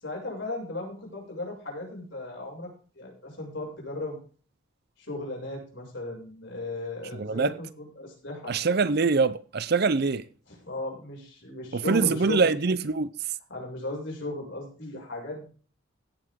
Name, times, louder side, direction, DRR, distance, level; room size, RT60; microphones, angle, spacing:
voice 1, 0.0-4.2 5.0-8.6 10.5-12.5 13.5-15.4, left 2 dB, 55° left, 6.7 m, -36 dB
voice 2, 7.1-7.5 8.5-10.2 11.7-13.1, right 4 dB, 50° right, 0.6 m, -24 dB
17.0 x 8.1 x 3.7 m
head